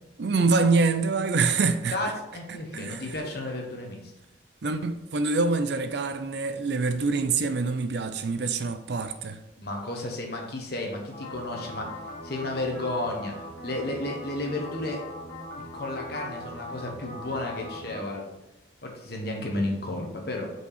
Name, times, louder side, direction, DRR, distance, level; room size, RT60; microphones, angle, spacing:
voice 1, 0.2-2.0 2.7-3.0 4.6-9.4, right 4 dB, 60° right, 0.5 m, -25 dB
voice 2, 1.9-4.1 9.6-15.0 15.6-18.3 18.8-20.5, left 2 dB, 55° left, 1.3 m, -33 dB
sound 1, 11.1-18.0, left 1 dB, 75° left, 2.1 m, -40 dB
5.3 x 4.7 x 4.9 m
head